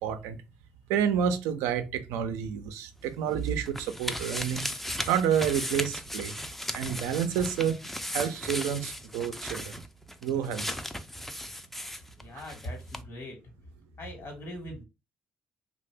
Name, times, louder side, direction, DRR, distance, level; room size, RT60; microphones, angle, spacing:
voice 1, 0.0-0.4 0.9-4.7 5.1-6.3 6.7-9.8 10.2-10.7, right 8 dB, 90° right, 0.4 m, -29 dB
sound 1, 3.0-12.7 12.9-13.0, left 1 dB, 5° left, 0.4 m, -36 dB
voice 2, 12.2-13.4 14.0-14.8, left 1 dB, 55° left, 1.3 m, -40 dB
2.7 x 2.3 x 3.3 m
supercardioid pair, 65°, 5 cm